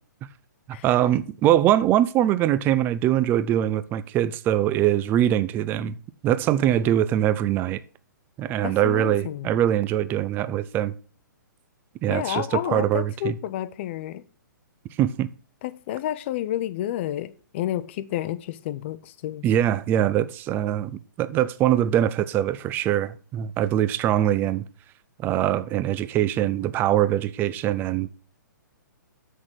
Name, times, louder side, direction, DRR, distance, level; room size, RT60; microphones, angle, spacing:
voice 1, 0.7-6.0 6.2-7.8 8.4-10.9 12.0-13.3 15.0-15.3 19.4-24.6 25.2-28.1, right 12 dB, 20° right, 0.5 m, -23 dB
voice 2, 8.6-9.5 12.1-14.2 15.6-19.4, left 13 dB, 35° left, 0.8 m, -30 dB
7.4 x 6.4 x 7.8 m
figure-of-eight pair, 120°, 11 cm